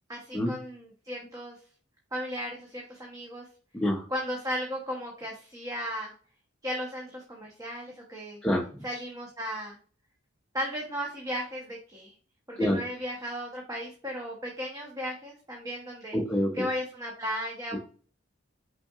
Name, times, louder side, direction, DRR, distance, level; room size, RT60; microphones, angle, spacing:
voice 1, 0.1-1.6 2.1-3.4 4.1-6.1 6.6-8.4 8.8-9.8 10.5-12.1 12.5-16.2 16.5-17.8, equal, 15° right, -1 dB, 0.9 m, -35 dB
voice 2, 3.7-4.1 8.4-8.8 12.6-12.8 16.1-16.7 17.7-17.8, equal, 5° left, -2 dB, 0.6 m, -27 dB
5.7 x 3.6 x 2.4 m, 0.41 s
head